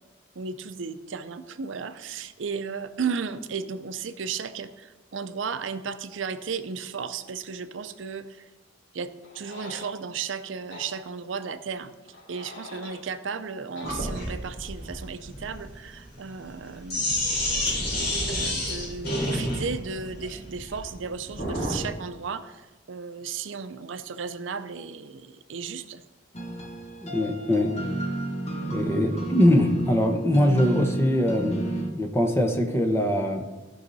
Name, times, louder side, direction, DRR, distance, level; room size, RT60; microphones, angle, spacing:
voice 1, 0.4-8.5 8.9-11.9 12.3-17.2 18.3-26.0, right 5 dB, 85° right, 11 dB, 0.6 m, -34 dB
sound 1, 9.2-9.9 10.7-10.9 12.1-13.0 13.8-13.9, left 2 dB, 70° left, 3.2 m, -43 dB
Sink (filling or washing), 13.8-21.8, left 1 dB, 55° left, 3.9 m, -30 dB
sound 2, 26.3-31.9, right 1 dB, 35° left, 1.2 m, -31 dB
voice 2, 27.0-27.7 28.7-31.6 32.0-33.4, left 1 dB, 15° left, 3 dB, 1.0 m, -22 dB
15.0 x 5.6 x 4.1 m, 1.1 s
head